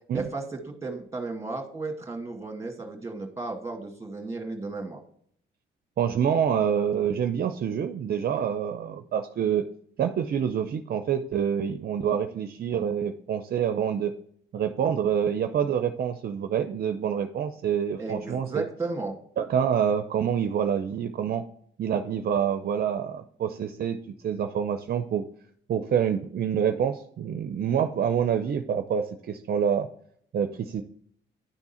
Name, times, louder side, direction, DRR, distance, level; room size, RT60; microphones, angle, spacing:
voice 1, 0.1-5.0 18.0-19.2, right 3 dB, 15° right, 2 dB, 1.8 m, -34 dB
voice 2, 6.0-9.6 10.0-14.1 14.5-18.6 19.4-21.4 21.8-24.0 24.2-25.2 25.7-29.9 30.3-30.8, right 8 dB, 50° right, 8 dB, 0.5 m, -26 dB
10.5 x 3.6 x 4.2 m, 0.64 s
cardioid pair, 90°, 20 cm